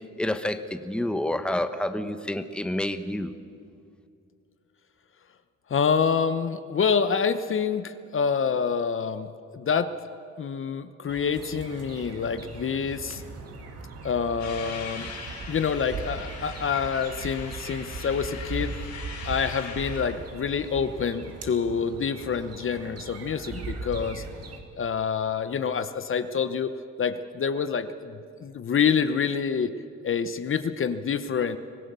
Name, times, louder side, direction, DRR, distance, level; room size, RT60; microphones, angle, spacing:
voice 1, 0.2-3.4, left 1 dB, 5° left, 9 dB, 1.1 m, -28 dB
voice 2, 5.7-9.9 10.4-13.2 14.0-15.1 15.5-18.7 19.3-24.2 24.8-26.7 27.0-29.7 30.0-31.6, left 6 dB, 45° left, 11 dB, 1.0 m, -27 dB
sound 1, 11.1-24.6, right 3 dB, 55° right, 2.5 m, -39 dB
sound 2, 14.4-20.0, left 5 dB, 70° left, 5.8 m, -41 dB
25.0 x 17.0 x 6.9 m, 2.4 s
cardioid pair, 90°, 30 cm